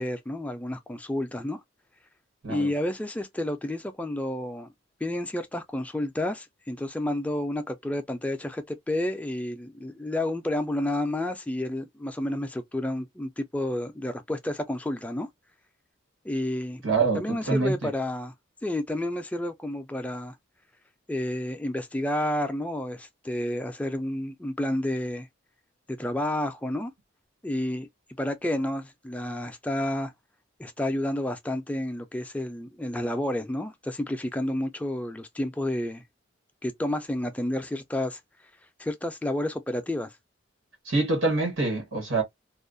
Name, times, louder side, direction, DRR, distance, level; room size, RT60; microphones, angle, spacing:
voice 1, 0.0-1.6 2.5-4.7 5.0-15.3 16.2-16.8 17.1-18.3 18.6-20.4 21.1-25.3 25.9-26.9 27.4-27.9 28.2-30.1 30.6-36.0 36.6-38.2 38.8-40.1, left 1 dB, 5° left, 0.3 m, -30 dB
voice 2, 16.8-17.7 40.8-42.2, right 3 dB, 90° right, 1.3 m, -25 dB
2.3 x 2.1 x 2.5 m
head